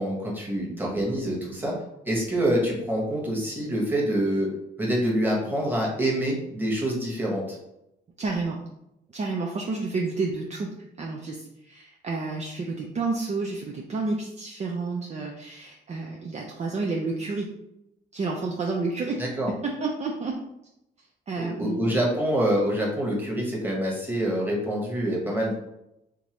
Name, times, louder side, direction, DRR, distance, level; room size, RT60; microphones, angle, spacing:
voice 1, 0.0-1.7 2.0-4.5 4.8-7.6 19.2-19.5 21.4-25.5, right 1 dB, 10° right, -3 dB, 1.3 m, -26 dB
voice 2, 8.2-8.6 9.1-10.7 11.0-17.5 18.1-19.2 19.6-20.4 21.3-22.0, right 3 dB, 35° right, 0 dB, 0.5 m, -30 dB
3.5 x 2.7 x 3.0 m, 0.86 s
cardioid pair, 90°, 20 cm